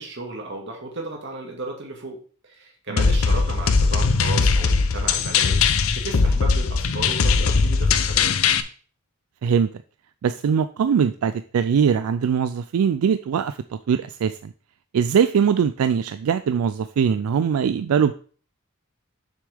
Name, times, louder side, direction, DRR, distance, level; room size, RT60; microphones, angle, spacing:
voice 1, 0.0-5.6 5.9-8.4, right 2 dB, 55° right, 1 dB, 2.0 m, -34 dB
sound 1, 3.0-8.6, left 4 dB, 75° left, 0.6 m, -20 dB
voice 2, 10.2-14.5 14.9-18.1, right 7 dB, 85° right, 12 dB, 0.3 m, -21 dB
6.8 x 6.3 x 3.5 m, 0.42 s
head